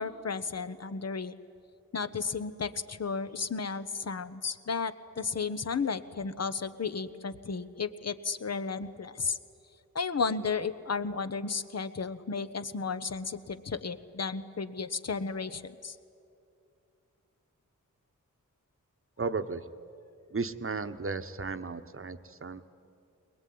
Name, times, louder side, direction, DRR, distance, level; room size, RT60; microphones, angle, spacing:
voice 1, 0.0-1.3 1.9-9.4 9.9-16.0, left 5 dB, 50° left, 12 dB, 1.1 m, -33 dB
voice 2, 19.2-19.7 20.3-22.6, right 4 dB, 40° right, 10 dB, 1.1 m, -34 dB
22.0 x 21.0 x 9.5 m, 2.5 s
cardioid pair, 65°, 32 cm